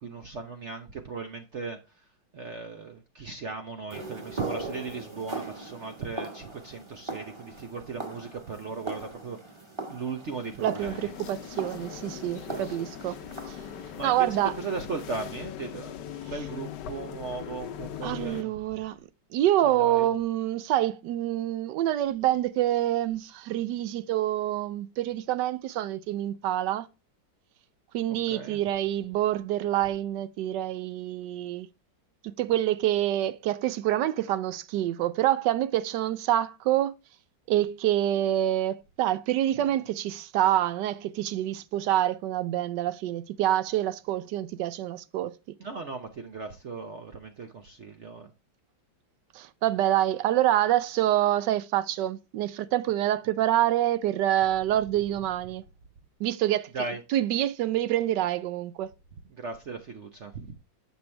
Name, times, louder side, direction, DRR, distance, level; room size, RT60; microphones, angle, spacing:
voice 1, 0.0-1.8 2.3-9.5 9.9-11.1 12.3-13.2 13.9-18.5 19.7-20.1 28.1-28.6 45.6-48.3 56.7-57.0 59.3-60.5, right 4 dB, 55° right, 0.8 m, -37 dB
sound 1, 3.9-15.1, right 2 dB, 15° right, 1.3 m, -40 dB
voice 2, 10.6-10.9 11.3-13.2 13.5-13.6 14.0-14.5 18.0-19.0 19.3-26.9 27.9-31.7 32.4-36.9 37.5-45.3 49.3-55.6 56.2-56.7 57.1-58.9, right 13 dB, 75° right, 1.1 m, -26 dB
sound 2, 10.8-18.4, left 10 dB, 70° left, 1.2 m, -40 dB
7.4 x 6.9 x 3.2 m
omnidirectional pair, 2.1 m